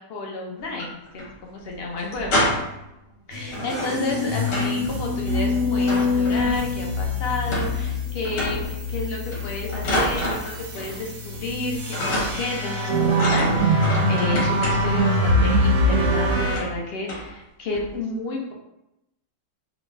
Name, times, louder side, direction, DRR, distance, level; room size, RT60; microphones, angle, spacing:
voice 1, 0.0-2.6 3.3-8.6 8.9-18.5, left 2 dB, 65° left, -1 dB, 0.6 m, -31 dB
sound 1, 0.6-1.3 1.6-1.7 2.0-2.9 3.5-4.8 5.1-6.8 7.5-8.0 8.2-8.7 9.3-11.0 11.3-11.6 11.9-12.6 13.1-15.1 15.9-16.1 16.5-16.8 17.1-17.3 17.7-18.0, equal, 80° left, 1.8 m, -28 dB
sound 2, 3.3-16.6, left 1 dB, 60° right, 0.7 m, -24 dB
3.8 x 2.3 x 3.5 m, 0.88 s
omnidirectional pair, 1.8 m